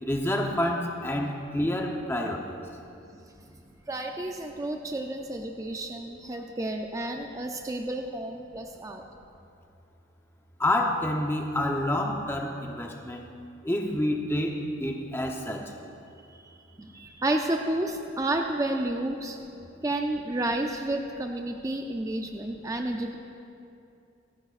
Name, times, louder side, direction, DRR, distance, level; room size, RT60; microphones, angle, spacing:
voice 1, 0.0-2.6 10.6-13.2 13.6-15.7, left 1 dB, 10° left, 1 dB, 0.8 m, -28 dB
voice 2, 3.9-9.0 16.3-16.5 16.8-19.4 19.8-23.2, right 1 dB, 15° right, 3 dB, 0.4 m, -31 dB
25.0 x 8.9 x 2.5 m, 2.6 s
head